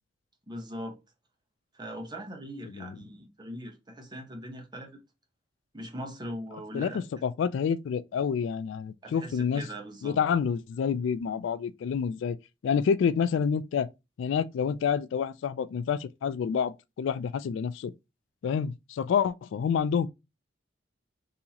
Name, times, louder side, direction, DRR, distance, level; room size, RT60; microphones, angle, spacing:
voice 1, 0.5-1.0 1.7-5.0 5.7-7.0 9.0-10.2, equal, 25° right, 1.0 m, -40 dB
voice 2, 7.2-9.6 10.0-12.4 12.6-13.9 14.2-17.9 18.4-20.1, left 7 dB, 70° left, 0.3 m, -28 dB
3.9 x 2.8 x 2.9 m
head